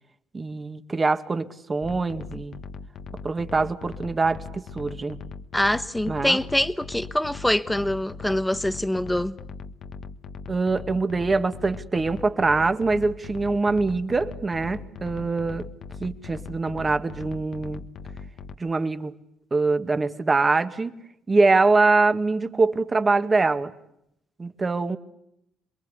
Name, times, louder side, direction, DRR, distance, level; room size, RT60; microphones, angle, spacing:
voice 1, 0.3-2.6 3.2-5.2 6.1-6.4 10.5-15.7 16.0-17.8 18.6-19.1 19.5-20.9 21.3-23.7 24.4-25.0, right 3 dB, 25° right, 2.2 m, -23 dB
sound 1, 1.8-18.6, left 5 dB, 65° left, 1.5 m, -40 dB
voice 2, 5.5-9.4, left 1 dB, 5° left, 1.3 m, -24 dB
28.5 x 22.0 x 8.3 m
cardioid pair, 90°, 0 cm